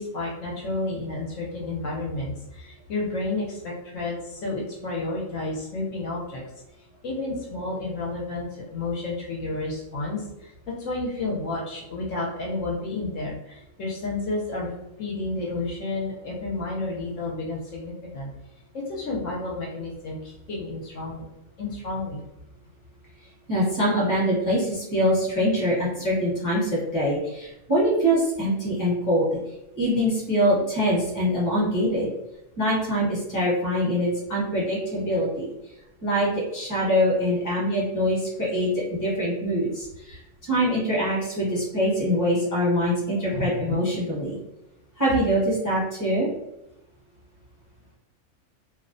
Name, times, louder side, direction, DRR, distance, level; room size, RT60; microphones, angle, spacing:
voice 1, 0.0-6.4 7.0-14.7 15.0-18.3 18.7-21.2 21.6-22.2 43.3-43.8, left 2 dB, 70° left, -3 dB, 0.9 m, -31 dB
voice 2, 23.5-29.3 29.8-32.1 32.6-35.5 36.0-44.4 45.0-46.3, equal, 15° left, -5 dB, 0.8 m, -24 dB
2.6 x 2.1 x 2.5 m, 0.90 s
omnidirectional pair, 1.4 m